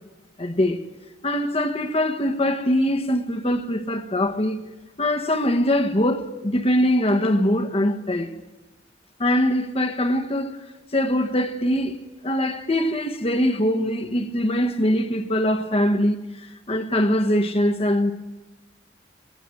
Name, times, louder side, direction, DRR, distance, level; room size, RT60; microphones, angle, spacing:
voice 1, 0.4-0.8 1.2-4.6 5.0-8.3 9.2-10.6 10.9-12.0 12.2-16.2 16.7-18.1, left 1 dB, 35° left, 1.3 m, -22 dB
20.5 x 18.5 x 7.9 m
head